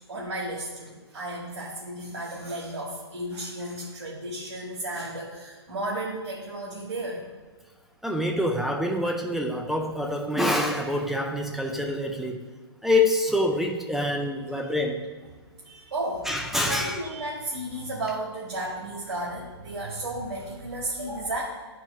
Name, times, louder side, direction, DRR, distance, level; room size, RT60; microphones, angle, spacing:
voice 1, 0.0-7.3 14.6-14.7 15.6-16.3 16.7-21.4, right 1 dB, 70° right, -5 dB, 1.4 m, -33 dB
voice 2, 8.0-12.4 12.8-15.0 16.3-16.9, left 1 dB, ahead, 1 dB, 0.4 m, -26 dB
10.5 x 4.6 x 2.3 m, 1.4 s
figure-of-eight pair, 125°, 14 cm